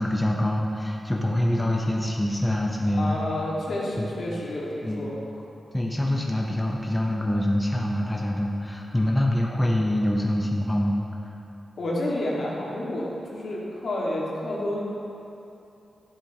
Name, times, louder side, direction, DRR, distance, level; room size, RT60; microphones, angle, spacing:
voice 1, 0.0-3.2 4.0-4.1 4.8-5.0 5.7-11.0, left 1 dB, 10° left, -2 dB, 0.9 m, -25 dB
voice 2, 2.9-5.2 11.8-14.8, left 1 dB, 70° left, -5 dB, 2.1 m, -29 dB
12.0 x 7.7 x 3.1 m, 2.8 s
cardioid pair, 65°, 0 cm